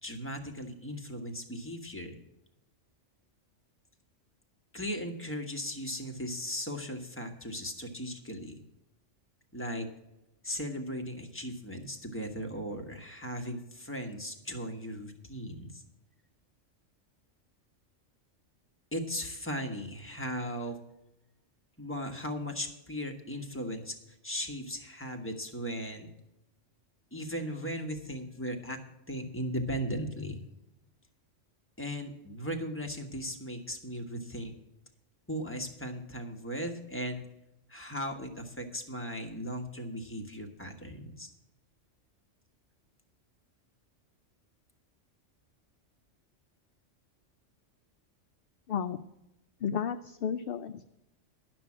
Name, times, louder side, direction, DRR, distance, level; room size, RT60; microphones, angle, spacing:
voice 1, 0.0-2.2 4.7-8.6 9.5-9.9 10.4-15.8 18.9-20.8 21.8-26.1 27.1-28.8 29.1-30.4 31.8-34.5 35.3-37.2 37.7-41.3, equal, 10° left, 3 dB, 1.4 m, -37 dB
voice 2, 48.7-49.0 49.6-50.8, left 7 dB, 60° left, 10 dB, 0.6 m, -32 dB
11.5 x 6.2 x 8.5 m, 0.89 s
omnidirectional pair, 1.3 m